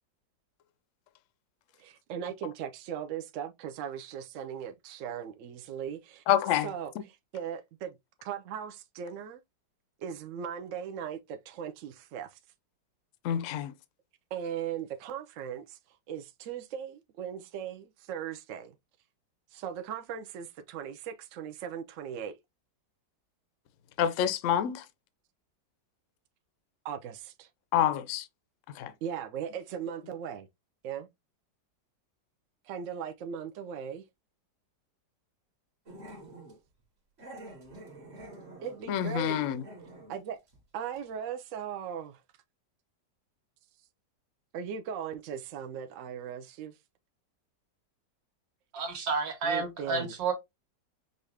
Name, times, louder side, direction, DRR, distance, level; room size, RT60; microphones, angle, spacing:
voice 1, 1.8-6.2 6.6-8.0 8.2-9.4 10.0-12.4 14.3-15.8 16.1-18.7 19.5-22.3 26.8-27.5 29.0-30.5 30.8-31.1 32.6-34.0 38.6-39.4 40.1-40.4 40.7-42.2 44.5-46.7 49.4-50.1, right 8 dB, 70° right, 0.7 m, -38 dB
voice 2, 6.3-6.7 13.2-13.7 24.0-24.8 27.7-28.2 28.8-28.9 38.9-39.6, left 10 dB, 65° left, 0.7 m, -27 dB
Growling, 35.9-36.6 37.2-40.2 40.5-40.6 40.9-41.0, right 1 dB, 40° right, 1.5 m, -48 dB
voice 3, 48.7-50.3, right 4 dB, 85° right, 2.0 m, -30 dB
5.6 x 2.5 x 3.3 m
omnidirectional pair, 1.9 m